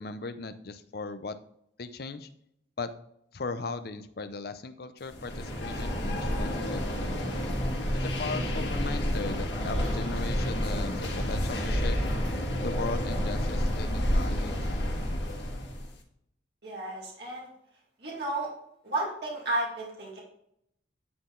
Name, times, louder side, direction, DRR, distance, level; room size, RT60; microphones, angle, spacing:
voice 1, 0.0-1.4 1.8-2.3 2.8-2.9 3.3-7.1 7.9-12.0 12.6-15.0, left 3 dB, 55° left, 11 dB, 0.6 m, -38 dB
sound 1, 5.1-15.9, equal, 70° left, 1.8 m, -30 dB
voice 2, 16.6-17.5 18.0-18.5 18.8-20.2, right 2 dB, 60° right, -4 dB, 2.2 m, -32 dB
9.5 x 4.1 x 3.8 m, 0.73 s
head